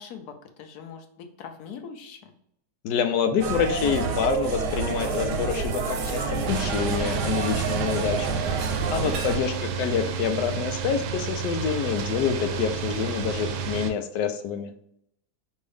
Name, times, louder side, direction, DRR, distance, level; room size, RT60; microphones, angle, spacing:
voice 1, 0.0-2.3 9.2-9.8, left 6 dB, 70° left, 6 dB, 1.2 m, -42 dB
voice 2, 2.8-8.3 8.5-14.7, left 7 dB, 90° left, 7 dB, 1.2 m, -27 dB
sound 1, 3.4-9.4, right 5 dB, 90° right, 1.4 m, -28 dB
sound 2, 6.5-13.9, right 6 dB, 75° right, 1.0 m, -31 dB
5.4 x 2.7 x 3.3 m, 0.74 s
omnidirectional pair, 1.8 m